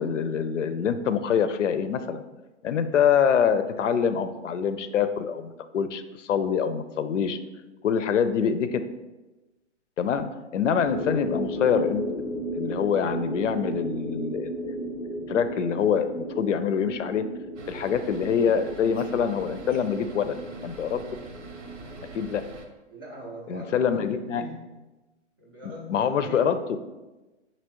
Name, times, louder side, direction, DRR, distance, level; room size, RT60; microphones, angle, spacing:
voice 1, 0.0-2.2 2.6-7.4 7.8-8.8 10.0-12.0 12.5-14.8 15.3-17.2 17.7-20.4 20.6-21.0 22.1-22.4 23.5-24.4 25.9-26.6, left 7 dB, 80° left, 10 dB, 0.5 m, -25 dB
sound 1, 10.8-22.2, right 1 dB, 15° left, 0.7 m, -34 dB
sound 2, 17.6-22.7, right 3 dB, 75° right, 0.9 m, -44 dB
voice 2, 22.9-24.6 25.4-26.5, left 2 dB, 20° right, -1 dB, 0.3 m, -41 dB
6.2 x 2.9 x 2.9 m, 1.1 s
hypercardioid pair, 135°, 36 cm